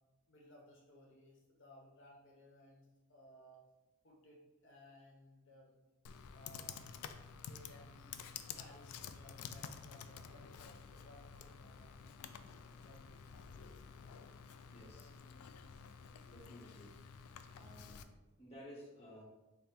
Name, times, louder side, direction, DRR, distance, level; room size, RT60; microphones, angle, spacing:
voice 1, 0.3-3.6 4.0-5.8 6.3-6.9 7.4-8.1 8.5-11.9 12.6-13.4 14.9-15.3, left 1 dB, 55° left, -2 dB, 0.9 m, -61 dB
Computer keyboard, 6.1-18.0, left 7 dB, 85° left, 0.3 m, -51 dB
voice 2, 14.7-15.1 16.2-16.9 17.5-18.1 18.4-19.2, equal, 30° left, -4 dB, 0.9 m, -54 dB
5.4 x 2.1 x 4.3 m, 1.1 s
head